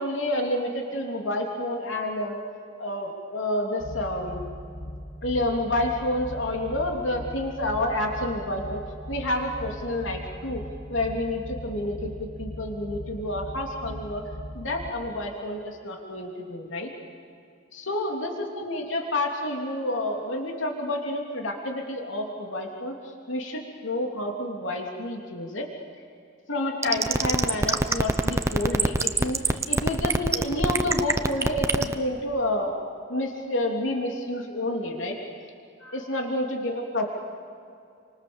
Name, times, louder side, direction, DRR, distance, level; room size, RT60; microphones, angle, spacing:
voice 1, 0.0-2.4 2.8-4.5 5.2-8.8 9.1-10.6 10.9-14.2 14.5-16.9 17.7-23.0 23.3-25.7 26.5-32.7 33.1-35.2 35.8-37.1, left 1 dB, 80° left, 1 dB, 3.2 m, -29 dB
sound 1, 3.8-14.9, equal, 60° left, 2.3 m, -38 dB
sound 2, 26.8-31.9, right 2 dB, 15° right, 0.8 m, -22 dB
30.0 x 25.5 x 7.2 m, 2.5 s
head